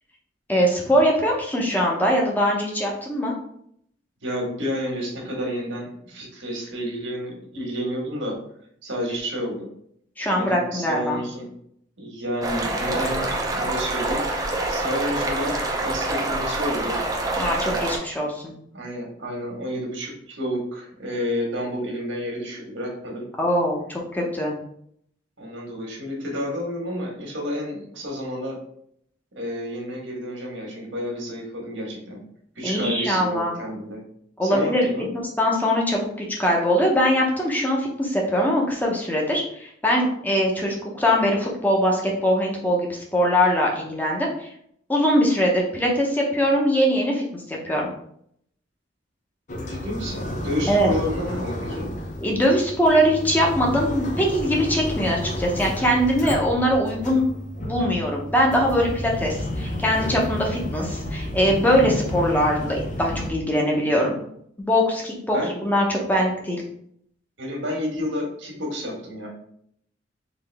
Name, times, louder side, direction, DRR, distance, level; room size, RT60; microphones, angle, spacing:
voice 1, 0.5-3.3 10.2-11.2 17.4-18.5 23.4-23.8 24.1-24.5 32.6-33.5 34.4-34.9 35.1-36.1 36.4-44.5 44.9-47.9 50.7-50.9 52.2-57.3 57.6-64.2 64.6-65.4 65.6-66.6, equal, 10° left, -2 dB, 0.8 m, -22 dB
voice 2, 4.2-8.3 8.8-9.7 10.4-11.5 12.0-14.2 14.7-17.0 18.7-23.3 25.4-28.6 29.3-32.2 32.5-34.0 34.4-35.1 49.7-51.9 65.3-65.5 67.4-69.3, equal, 80° right, -1 dB, 1.5 m, -30 dB
sound 1, 12.4-18.0, right 2 dB, 20° right, 0.6 m, -26 dB
sound 2, 49.5-63.3, left 1 dB, 40° left, 0.6 m, -31 dB
4.0 x 3.3 x 3.4 m, 0.69 s
head